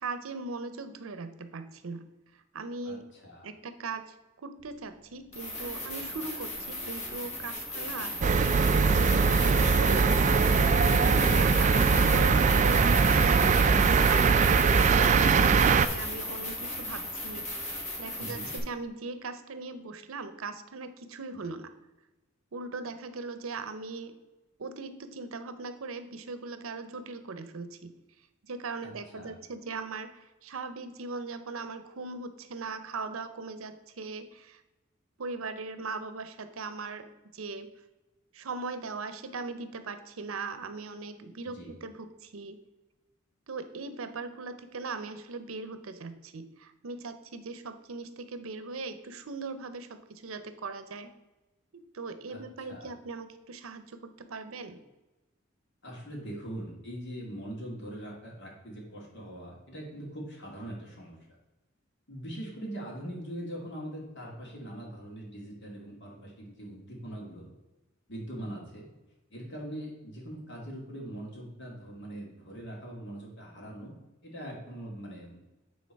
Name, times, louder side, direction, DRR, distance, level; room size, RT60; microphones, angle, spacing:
voice 1, 0.0-2.1 2.5-3.1 3.4-8.6 8.9-13.5 13.8-17.5 18.0-21.7 22.5-24.1 24.6-27.9 28.4-34.6 35.2-37.1 37.3-37.7 38.3-42.6 43.5-51.1 51.7-54.8, right 3 dB, 85° right, 10 dB, 0.7 m, -39 dB
voice 2, 2.8-3.5 18.2-18.5 28.8-29.4 41.4-41.7 52.3-52.9 55.8-61.2 62.1-67.5 68.1-68.8 69.3-74.0 74.2-75.4, right 1 dB, 60° left, -1 dB, 2.1 m, -42 dB
sound 1, 4.6-4.7 5.3-18.6, left 1 dB, 35° left, 1.4 m, -35 dB
sound 2, 8.2-15.9, right 5 dB, 35° right, 0.3 m, -22 dB
8.6 x 3.7 x 4.6 m, 1.1 s
head